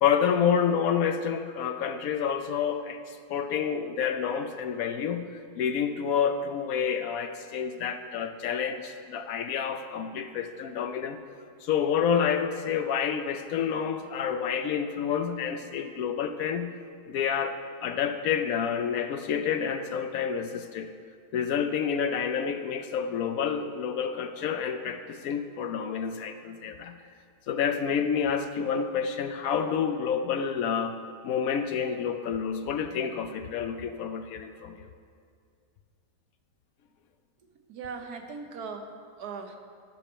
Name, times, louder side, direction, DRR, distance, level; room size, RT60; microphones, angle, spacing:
voice 1, 0.0-3.0 3.3-5.3 5.6-11.2 11.6-16.7 17.1-20.9 21.3-26.9 27.5-31.0 31.2-34.9, left 7 dB, 70° left, 8 dB, 0.9 m, -28 dB
voice 2, 37.5-39.6, right 5 dB, 70° right, 5 dB, 1.4 m, -39 dB
12.0 x 5.6 x 6.8 m, 2.2 s
omnidirectional pair, 1.7 m